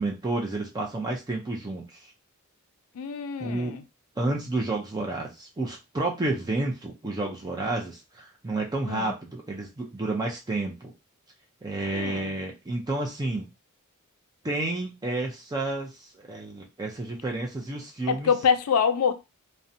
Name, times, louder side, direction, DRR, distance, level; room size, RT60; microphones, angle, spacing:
voice 1, 0.0-2.0 3.4-3.7 4.2-10.9 11.6-13.5 14.4-18.3, right 2 dB, 15° right, 0.4 m, -30 dB
voice 2, 3.0-3.8 8.8-9.1 11.9-12.3 18.1-19.1, left 6 dB, 75° left, 0.4 m, -25 dB
2.5 x 2.1 x 2.6 m
head